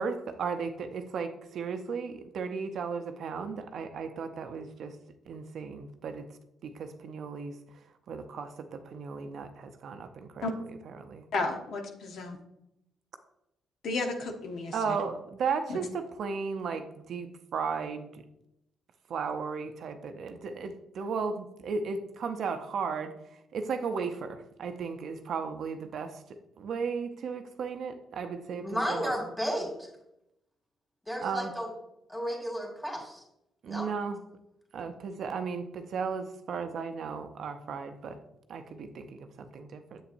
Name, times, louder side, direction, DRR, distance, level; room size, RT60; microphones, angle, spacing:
voice 1, 0.0-5.0 5.3-6.3 6.6-7.6 8.1-11.3 14.7-18.2 19.1-26.2 26.6-29.1 31.2-31.5 33.6-34.2 34.7-38.2 38.5-40.0, right 5 dB, 65° right, 7 dB, 0.6 m, -35 dB
voice 2, 11.3-12.4 13.8-15.0, left 3 dB, 70° left, 3 dB, 0.9 m, -33 dB
voice 3, 28.6-29.7 31.1-31.7 32.1-33.2 33.7-33.9, equal, 5° left, 0 dB, 2.2 m, -33 dB
7.3 x 7.0 x 2.6 m, 0.83 s
cardioid pair, 90°, 0 cm